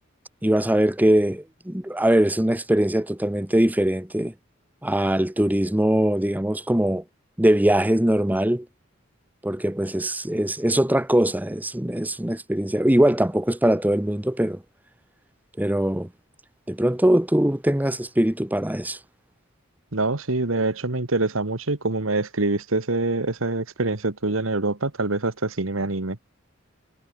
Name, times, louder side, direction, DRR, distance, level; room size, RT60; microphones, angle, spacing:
voice 1, 0.4-4.3 4.8-7.0 7.4-8.7 9.4-14.6 15.6-16.1 16.7-19.0, right 1 dB, 10° right, 0.9 m, -21 dB
voice 2, 19.9-26.2, right 2 dB, 85° right, 1.8 m, -25 dB
head